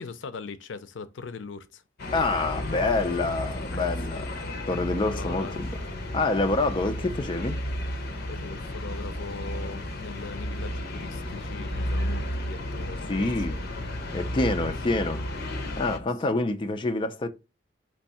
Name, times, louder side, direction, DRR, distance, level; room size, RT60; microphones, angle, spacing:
voice 1, 0.0-1.8 3.7-4.4 5.0-5.6 8.3-13.2 13.5-13.7 14.6-14.7 15.9-16.1 16.3-16.4, left 4 dB, 80° left, 0.5 m, -40 dB
sound 1, 2.0-16.0, left 1 dB, 55° left, 0.9 m, -33 dB
voice 2, 2.1-5.8 6.1-7.6 13.1-13.6 14.1-15.2 15.8-17.3, left 2 dB, 25° left, 0.4 m, -27 dB
4.5 x 2.6 x 4.1 m
head